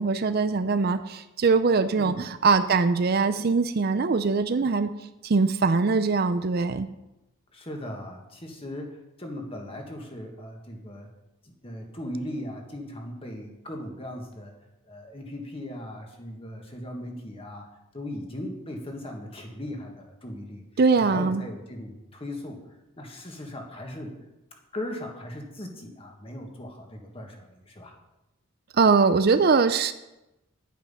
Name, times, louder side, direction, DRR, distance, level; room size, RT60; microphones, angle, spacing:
voice 1, 0.0-4.9 5.2-6.9 20.8-21.4 28.8-29.9, right 4 dB, 45° right, 11 dB, 0.5 m, -22 dB
voice 2, 7.5-11.1 11.4-14.5 14.9-17.7 17.9-20.6 20.9-22.6 23.0-24.2 24.7-27.9, left 1 dB, 25° left, 2 dB, 1.8 m, -38 dB
10.5 x 9.0 x 5.6 m, 0.95 s
head